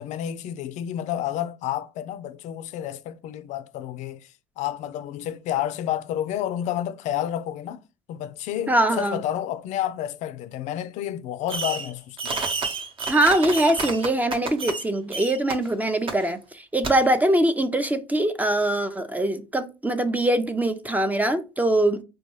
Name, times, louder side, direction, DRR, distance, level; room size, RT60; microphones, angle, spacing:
voice 1, 0.0-4.3 4.6-7.8 8.1-12.5, left 11 dB, 60° left, 0.4 m, -30 dB
voice 2, 8.7-9.2 13.1-22.0, right 1 dB, 10° right, 0.4 m, -22 dB
Fireworks, 11.5-11.9 12.2-14.8 15.1-15.5 16.1-16.2 16.8-16.9, right 4 dB, 40° right, 0.8 m, -29 dB
4.1 x 2.2 x 3.1 m
supercardioid pair, 80°, 14 cm